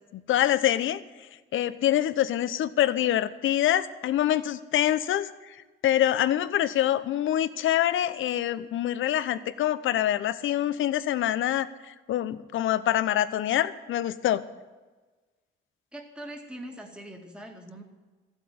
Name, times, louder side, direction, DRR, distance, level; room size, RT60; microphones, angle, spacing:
voice 1, 0.1-1.0 1.5-5.5 5.8-14.4, left 12 dB, 70° left, 14 dB, 0.9 m, -25 dB
voice 2, 15.9-17.8, right 1 dB, 5° right, 1 dB, 2.2 m, -42 dB
14.5 x 8.2 x 9.4 m, 1.3 s
cardioid pair, 120°, 21 cm